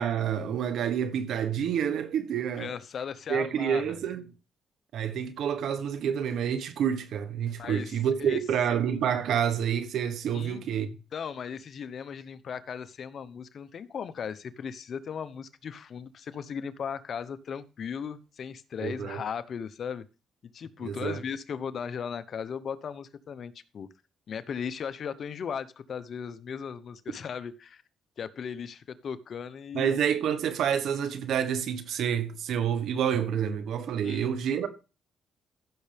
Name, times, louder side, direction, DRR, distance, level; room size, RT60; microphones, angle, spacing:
voice 1, 0.0-2.7 3.3-4.2 4.9-10.9 18.8-19.2 20.8-21.2 29.7-34.7, right 8 dB, 75° right, 1.3 m, -28 dB
voice 2, 2.6-4.0 7.6-7.9 8.2-8.4 10.3-10.6 11.1-20.0 20.5-23.9 24.3-27.8 28.2-29.9 34.0-34.3, left 7 dB, 55° left, 0.9 m, -37 dB
15.0 x 6.7 x 3.4 m
cardioid pair, 90°, 0 cm